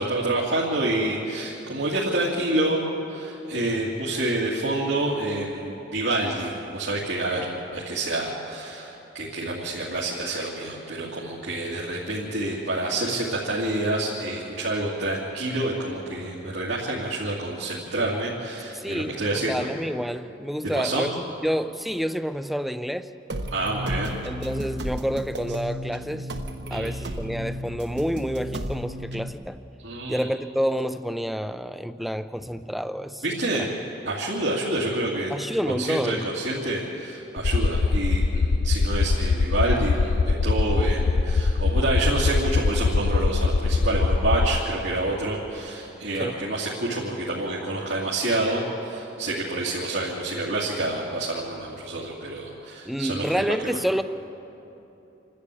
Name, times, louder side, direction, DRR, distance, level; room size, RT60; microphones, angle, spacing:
voice 1, 0.0-2.8 3.1-19.7 20.7-21.1 23.5-24.1 26.7-26.9 29.8-30.3 33.2-33.7 34.0-35.3 35.8-53.8, right 2 dB, 85° right, -6 dB, 2.6 m, -28 dB
voice 2, 18.7-21.1 21.4-23.1 24.2-26.3 26.7-29.6 30.1-33.2 33.6-33.8 35.3-36.2 46.2-46.3 52.9-54.0, equal, ahead, 11 dB, 0.4 m, -28 dB
sound 1, 23.3-29.3, equal, 65° right, 1.1 m, -33 dB
sound 2, 37.4-44.6, left 4 dB, 60° left, 0.5 m, -22 dB
28.5 x 12.0 x 8.5 m, 3.0 s
head